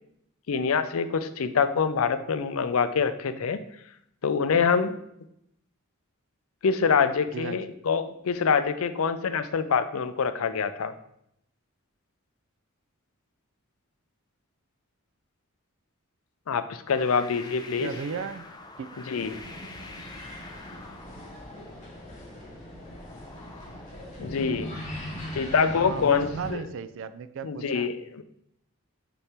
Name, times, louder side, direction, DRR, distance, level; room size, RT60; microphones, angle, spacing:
voice 1, 0.5-3.6 4.2-5.0 6.6-10.9 16.5-17.9 19.1-19.4 24.2-24.7 25.3-26.6 27.4-28.2, left 6 dB, 80° left, 11 dB, 0.5 m, -25 dB
sound 1, 16.9-25.7, left 2 dB, 20° left, 0.5 m, -47 dB
voice 2, 17.8-18.5 18.8-19.0 25.7-27.9, right 5 dB, 65° right, 13 dB, 0.4 m, -35 dB
sound 2, 19.2-26.5, equal, 35° left, 2.0 m, -40 dB
5.2 x 4.6 x 4.3 m, 0.76 s
head